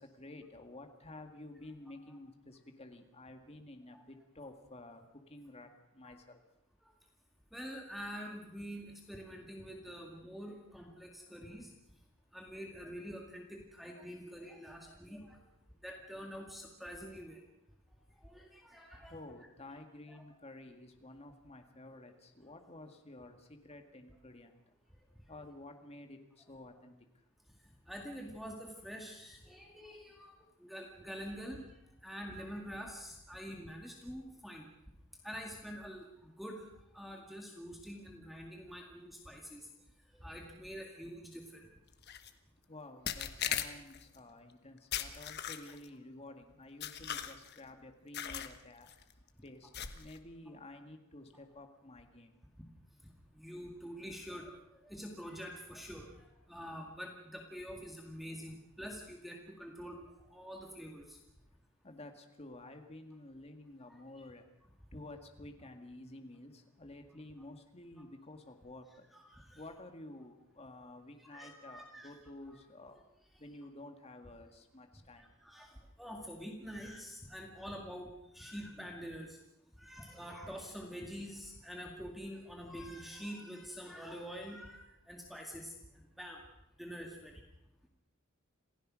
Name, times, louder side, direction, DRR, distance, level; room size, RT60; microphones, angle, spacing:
voice 1, 0.0-6.4 14.2-14.4 19.0-24.6 25.3-26.9 42.7-48.9 49.4-52.4 61.8-64.5 64.9-69.1 69.6-73.0 73.4-75.3, left 2 dB, 30° left, 5 dB, 2.0 m, -51 dB
voice 2, 7.5-11.7 12.3-15.4 15.8-17.4 18.2-19.2 20.1-20.2 27.9-31.6 32.0-34.7 35.2-36.7 36.9-39.7 40.1-41.7 53.3-54.6 54.8-61.2 63.9-64.0 69.1-69.6 71.2-72.1 72.5-72.6 75.2-79.4 79.8-85.7 86.2-86.4 86.8-87.4, equal, ahead, 1 dB, 2.1 m, -46 dB
sound 1, 42.0-42.3 43.1-44.0 44.9-45.9 46.8-47.6 48.1-48.6 48.9-49.1 49.7-50.2, left 9 dB, 50° left, 1.3 m, -38 dB
27.5 x 16.0 x 6.3 m, 0.85 s
head